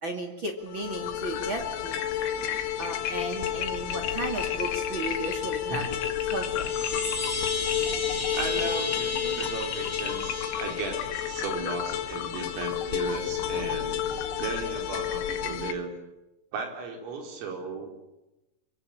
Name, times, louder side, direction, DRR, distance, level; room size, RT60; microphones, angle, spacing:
voice 1, 0.0-2.0 2.8-6.7 9.1-9.2, right 2 dB, 40° right, 4 dB, 1.7 m, -35 dB
sound 1, 0.7-15.7, left 10 dB, 80° left, 4.6 m, -31 dB
sound 2, 6.4-11.4, left 3 dB, 20° left, 2.9 m, -34 dB
voice 2, 6.9-7.3 7.7-7.8 8.3-13.9 14.4-15.9 16.5-17.9, right 4 dB, 75° right, 3 dB, 7.3 m, -36 dB
26.0 x 23.5 x 8.8 m, 0.98 s
omnidirectional pair, 5.9 m